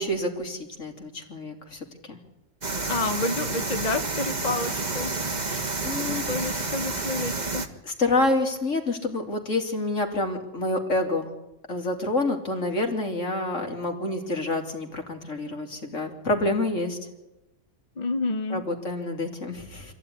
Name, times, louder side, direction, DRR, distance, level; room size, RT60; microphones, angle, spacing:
voice 1, 0.0-2.2 5.5-6.3 6.6-6.7 7.8-11.3 11.7-17.0 18.5-19.9, left 2 dB, 55° left, 3 dB, 3.2 m, -28 dB
sound 1, 2.6-7.7, right 3 dB, 30° right, 1.7 m, -29 dB
voice 2, 2.9-5.1 6.3-7.6 18.0-18.6, left 3 dB, 35° left, 8 dB, 0.9 m, -29 dB
26.0 x 15.5 x 10.0 m, 0.98 s
omnidirectional pair, 1.6 m